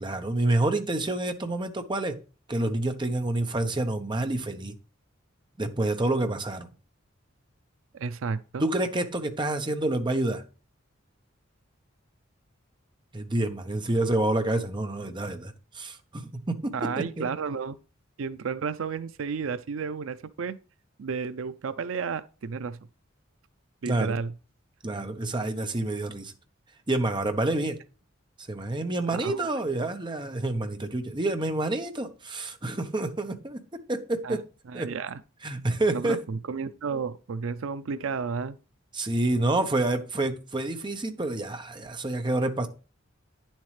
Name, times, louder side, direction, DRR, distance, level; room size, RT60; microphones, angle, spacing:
voice 1, 0.0-2.2 2.5-4.7 5.6-6.7 8.6-10.4 13.1-17.3 23.9-24.2 24.8-26.3 26.9-27.8 28.5-33.6 33.9-34.4 34.7-34.9 35.4-36.2 38.9-42.7, right 2 dB, 25° right, 1.0 m, -28 dB
voice 2, 7.9-8.7 16.7-17.8 18.2-20.6 21.0-22.8 23.8-24.3 29.1-29.5 34.2-34.4 34.7-35.2 35.9-38.6, right 5 dB, 80° right, 0.5 m, -32 dB
9.7 x 7.4 x 3.2 m
head